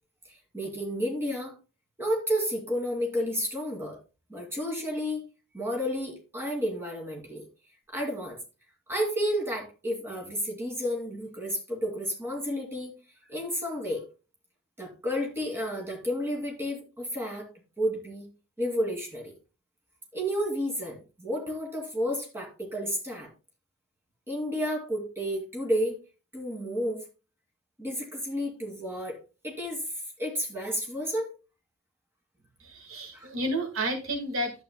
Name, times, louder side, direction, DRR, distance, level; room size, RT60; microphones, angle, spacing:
voice 1, 0.5-1.5 2.0-4.0 4.3-5.2 5.5-7.5 7.9-8.4 8.9-12.9 13.3-14.0 14.8-17.5 17.8-18.3 18.6-19.3 20.1-23.3 24.3-26.0 26.3-27.1 27.8-29.2 29.4-29.9 30.2-31.3 33.1-33.3, equal, 10° right, -1 dB, 2.6 m, -31 dB
voice 2, 32.6-34.6, right 1 dB, 75° right, 4 dB, 1.8 m, -31 dB
11.0 x 8.2 x 2.2 m, 0.31 s
head